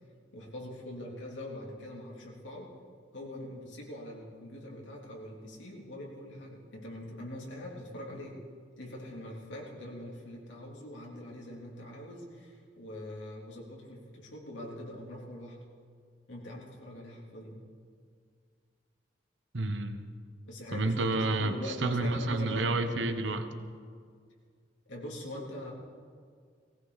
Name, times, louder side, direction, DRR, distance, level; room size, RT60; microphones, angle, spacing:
voice 1, 0.3-2.7 3.1-8.4 8.8-15.6 16.3-17.6 20.5-22.9 24.8-25.7, left 1 dB, 90° left, -3 dB, 3.4 m, -43 dB
voice 2, 19.5-20.1 20.7-23.5, right 2 dB, 85° right, 8 dB, 1.1 m, -30 dB
19.5 x 17.5 x 4.1 m, 2.1 s
head